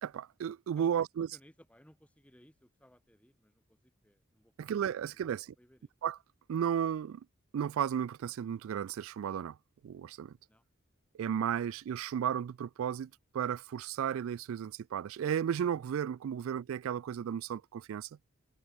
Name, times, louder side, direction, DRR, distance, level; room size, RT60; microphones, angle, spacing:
voice 1, 0.0-1.3 4.6-5.5 6.0-6.2 6.5-7.2 7.5-9.6 9.8-10.3 11.2-18.1, right 8 dB, 80° right, 0.3 m, -34 dB
voice 2, 1.3-4.7 5.1-5.3 5.6-5.9 10.5-10.6 16.4-16.5, equal, 5° left, 3.0 m, -62 dB
open air
head